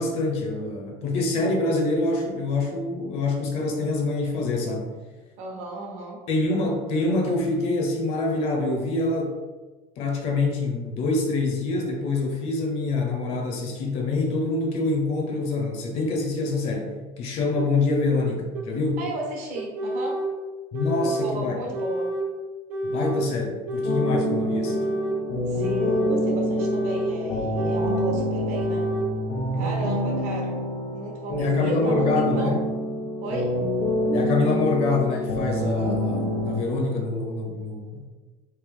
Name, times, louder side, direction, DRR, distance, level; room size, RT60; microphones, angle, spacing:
voice 1, 0.0-4.9 6.3-9.3 10.0-19.0 20.7-21.5 22.8-24.9 31.4-32.6 34.1-38.1, left 3 dB, 45° left, 2 dB, 0.6 m, -25 dB
voice 2, 5.4-6.2 19.0-20.2 21.0-22.1 25.5-28.8 29.6-30.6 30.9-32.6 33.2-33.5, right 1 dB, 55° right, -1 dB, 0.9 m, -33 dB
sound 1, 17.5-17.7 18.5-18.7 19.5-20.3 20.7-21.3 21.7-22.3 22.7-23.3 23.7-24.2 24.6-25.2 25.6-26.2 26.6-27.1 27.6-28.1 28.5-29.1, right 1 dB, 75° right, 0.6 m, -28 dB
sound 2, 23.8-36.6, equal, 85° left, 1.2 m, -26 dB
3.4 x 2.8 x 3.5 m, 1.3 s
cardioid pair, 170°, 14 cm